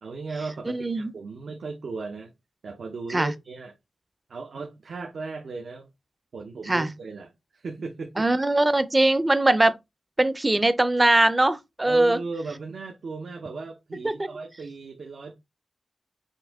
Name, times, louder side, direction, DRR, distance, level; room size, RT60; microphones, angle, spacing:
voice 1, 0.0-2.3 2.6-3.7 4.3-5.9 6.3-8.3 11.9-15.3, right 4 dB, 70° right, 0.7 m, -36 dB
voice 2, 0.7-1.1 3.1-3.3 6.7-6.9 8.2-9.8 10.2-12.2 14.0-14.3, right 2 dB, 20° right, 0.5 m, -21 dB
5.7 x 2.6 x 3.5 m
wide cardioid pair, 100°, 0 cm